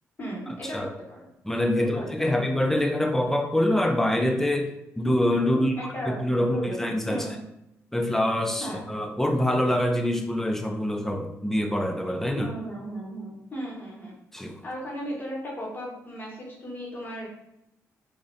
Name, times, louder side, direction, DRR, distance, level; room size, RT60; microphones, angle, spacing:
voice 1, 0.2-1.3 1.7-2.3 5.5-7.4 8.6-8.8 12.3-14.2 14.6-17.3, equal, 30° left, -3 dB, 1.0 m, -36 dB
voice 2, 1.4-5.7 6.2-7.3 7.9-12.5 14.3-14.6, left 1 dB, 5° left, 4 dB, 0.4 m, -25 dB
2.4 x 2.1 x 2.5 m, 0.84 s
supercardioid pair, 65°, 6 cm